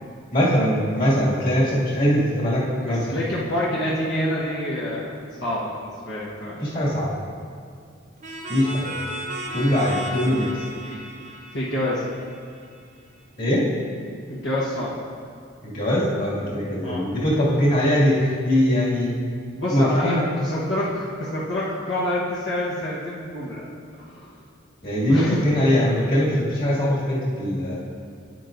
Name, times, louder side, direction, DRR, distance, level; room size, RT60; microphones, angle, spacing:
voice 1, 0.3-3.0 6.6-7.1 8.5-9.0 9.5-10.5 13.4-13.7 15.6-19.2 19.7-20.2 24.8-27.8, equal, 45° left, -7 dB, 2.2 m, -21 dB
voice 2, 2.9-5.1 5.4-6.6 10.8-11.0 11.5-12.0 14.3-14.9 16.8-17.1 19.5-23.6 23.9-24.3 25.0-25.4 26.7-26.8, left 1 dB, 70° left, -8 dB, 1.2 m, -27 dB
sound 1, 8.2-12.8, right 1 dB, 40° right, 1.0 m, -35 dB
9.3 x 9.1 x 2.6 m, 2.3 s
head